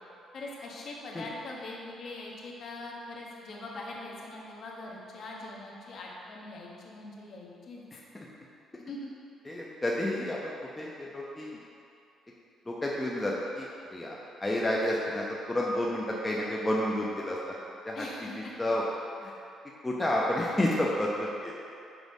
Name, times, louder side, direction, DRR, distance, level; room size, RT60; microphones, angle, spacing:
voice 1, 0.3-7.8 8.9-9.1 17.9-18.5, left 2 dB, 45° left, -3 dB, 1.2 m, -42 dB
voice 2, 7.9-8.3 9.5-11.6 12.7-18.0 18.3-18.8 19.2-19.3 19.8-21.6, left 1 dB, 10° left, -4 dB, 0.6 m, -31 dB
6.2 x 5.0 x 5.3 m, 2.5 s
cardioid pair, 150°, 0 cm